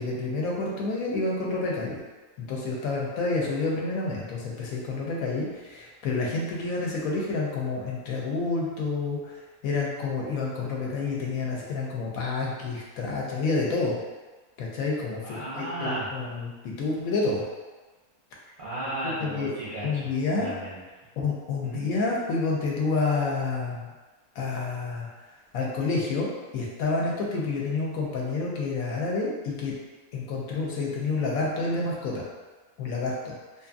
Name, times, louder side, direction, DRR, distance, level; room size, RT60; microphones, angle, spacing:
voice 1, 0.0-2.0 2.4-9.4 9.6-14.0 14.6-17.4 19.0-19.5 19.8-20.5 21.2-23.9 24.4-25.1 25.5-29.7 30.1-32.3 32.8-33.3, left 3 dB, 75° left, -3 dB, 1.0 m, -29 dB
voice 2, 15.2-16.1 18.6-20.0 20.4-20.8 21.6-21.9, right 1 dB, 55° right, -9 dB, 0.5 m, -34 dB
2.6 x 2.5 x 2.4 m, 1.3 s
omnidirectional pair, 1.5 m